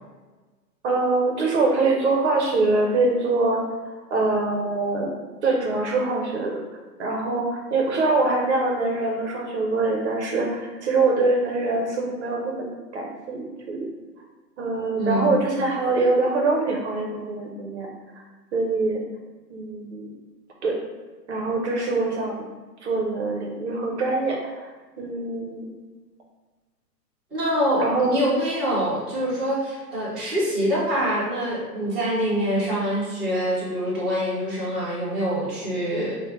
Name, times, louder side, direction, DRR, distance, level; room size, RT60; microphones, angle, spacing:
voice 1, 0.8-3.6 4.1-5.1 5.4-6.6 7.0-13.9 14.6-17.9 18.5-19.0 19.5-20.1 20.6-20.7 21.3-22.4 22.8-24.7 25.0-25.7 27.8-28.1, right 3 dB, 45° right, 0 dB, 0.6 m, -24 dB
voice 2, 15.0-15.4 27.3-36.2, equal, ahead, -14 dB, 0.6 m, -25 dB
4.7 x 2.1 x 3.0 m, 1.3 s
hypercardioid pair, 140°, 49 cm